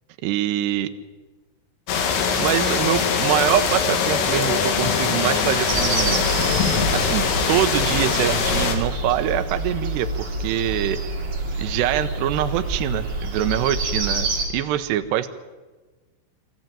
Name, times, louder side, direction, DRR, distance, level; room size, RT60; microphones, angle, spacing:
voice 1, 0.2-0.9 2.4-6.3 6.9-11.0 11.6-14.3 14.5-15.3, right 12 dB, 75° right, 8 dB, 2.6 m, -24 dB
sound 1, 1.9-8.8, left 6 dB, 80° left, 4.5 m, -22 dB
sound 2, 5.7-14.5, right 2 dB, 35° right, 2.8 m, -27 dB
23.0 x 14.5 x 9.0 m, 1.3 s
omnidirectional pair, 5.7 m